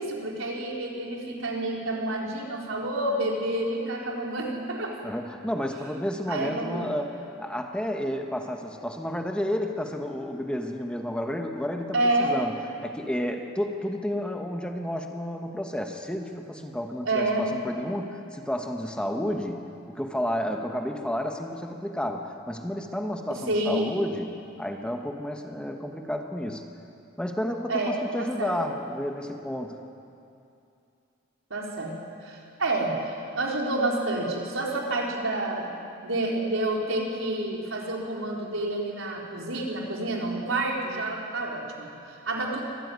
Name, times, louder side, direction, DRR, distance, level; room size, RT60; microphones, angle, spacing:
voice 1, 0.0-5.0 6.3-6.9 11.9-12.4 17.0-17.5 23.5-23.9 27.7-28.5 31.5-31.9 32.2-42.6, right 2 dB, 80° right, -2 dB, 4.2 m, -29 dB
voice 2, 5.0-12.5 12.8-19.6 19.9-26.6 27.2-29.8, equal, 5° left, 3 dB, 1.3 m, -31 dB
24.5 x 15.0 x 9.5 m, 2.6 s
head